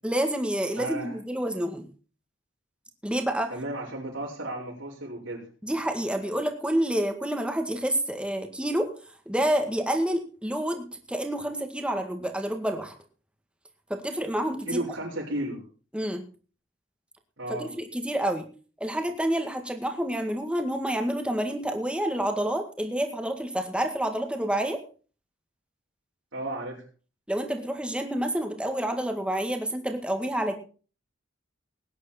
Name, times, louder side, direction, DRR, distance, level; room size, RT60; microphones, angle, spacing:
voice 1, 0.0-1.9 3.0-3.5 5.6-8.9 9.3-12.9 13.9-14.8 15.9-16.2 17.6-18.5 18.8-24.8 27.3-30.5, right 1 dB, 5° right, 5 dB, 1.9 m, -28 dB
voice 2, 0.8-1.2 3.5-5.5 14.7-15.6 17.4-17.7 26.3-26.8, right 1 dB, 80° right, -7 dB, 5.2 m, -33 dB
18.5 x 9.8 x 4.3 m, 0.37 s
head